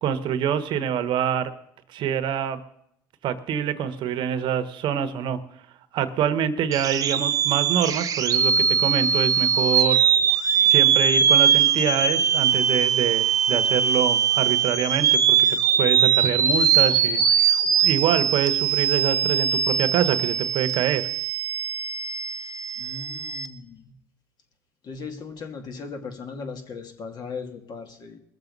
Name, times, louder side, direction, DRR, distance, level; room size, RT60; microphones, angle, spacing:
voice 1, 0.0-1.5 1.9-2.6 3.2-5.4 5.9-10.0 10.6-17.6 17.8-21.1, right 9 dB, 60° right, 10 dB, 1.2 m, -25 dB
sound 1, 6.7-23.5, right 7 dB, 40° right, 1.2 m, -21 dB
voice 2, 22.8-23.9 24.8-28.2, left 4 dB, 45° left, 5 dB, 2.4 m, -37 dB
21.0 x 7.4 x 5.4 m, 0.73 s
supercardioid pair, 105°, 9 cm